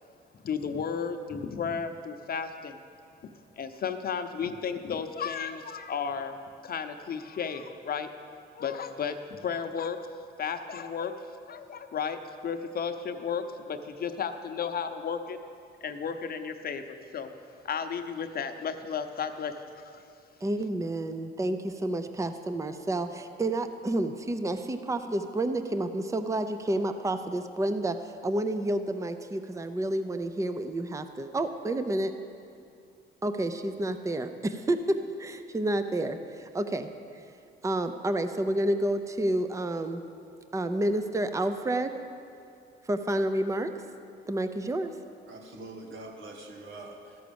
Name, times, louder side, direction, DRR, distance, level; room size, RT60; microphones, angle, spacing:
voice 1, 0.4-2.8 3.6-8.1 8.5-10.0 10.4-11.1 11.5-15.4 15.8-17.3 17.6-20.0, left 6 dB, 50° left, 7 dB, 0.8 m, -33 dB
voice 2, 20.4-32.1 33.2-37.2 37.6-40.0 40.5-42.0 42.8-43.7 44.3-44.9, right 1 dB, 15° right, 9 dB, 0.6 m, -30 dB
voice 3, 45.3-47.2, right 2 dB, 85° right, 1 dB, 1.9 m, -44 dB
13.5 x 6.3 x 7.0 m, 2.5 s
cardioid pair, 90°, 20 cm